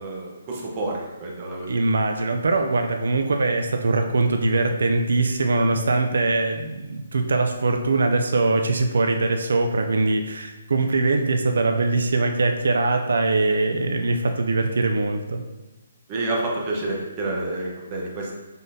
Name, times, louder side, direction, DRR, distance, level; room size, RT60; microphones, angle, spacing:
voice 1, 0.0-1.7 16.1-18.4, right 2 dB, 20° right, -3 dB, 0.8 m, -29 dB
voice 2, 1.7-15.4, right 3 dB, 75° right, 5 dB, 0.4 m, -22 dB
5.3 x 3.7 x 2.7 m, 1.1 s
hypercardioid pair, 170°, 0 cm